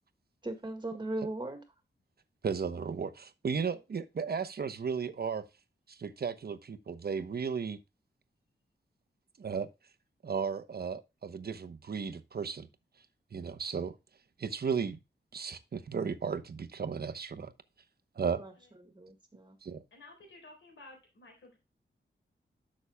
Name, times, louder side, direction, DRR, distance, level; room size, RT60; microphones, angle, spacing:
voice 1, 0.4-1.6 18.3-18.5 18.8-19.6, right 2 dB, 25° right, 1.8 m, -38 dB
voice 2, 2.4-5.4 5.9-7.8 9.4-9.7 10.2-12.7 13.3-13.9 14.4-15.0 15.3-17.5 18.2-18.4 19.6-19.8, right 6 dB, 55° right, 0.9 m, -35 dB
voice 3, 19.9-21.6, left 2 dB, 90° left, 4.1 m, -53 dB
12.5 x 6.3 x 2.2 m
wide cardioid pair, 110°, 19 cm